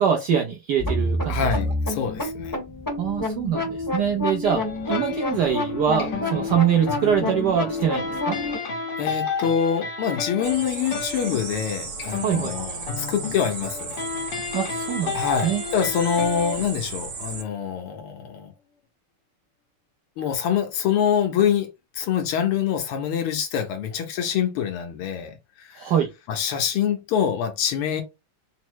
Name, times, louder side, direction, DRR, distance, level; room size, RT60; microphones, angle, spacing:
voice 1, 0.0-1.5 3.0-8.4 12.2-12.5 14.5-15.2 15.4-15.6 25.8-26.1, right 8 dB, 75° right, 0.9 m, -24 dB
sound 1, 0.8-8.6, left 1 dB, 15° left, 0.9 m, -28 dB
voice 2, 1.3-2.6 9.0-14.0 15.1-18.5 20.2-25.9 26.3-28.0, left 8 dB, 85° left, 1.6 m, -25 dB
sound 2, 4.4-17.7, left 5 dB, 65° left, 1.6 m, -33 dB
sound 3, 10.4-17.4, right 5 dB, 60° right, 1.6 m, -35 dB
4.1 x 2.0 x 4.5 m
omnidirectional pair, 2.4 m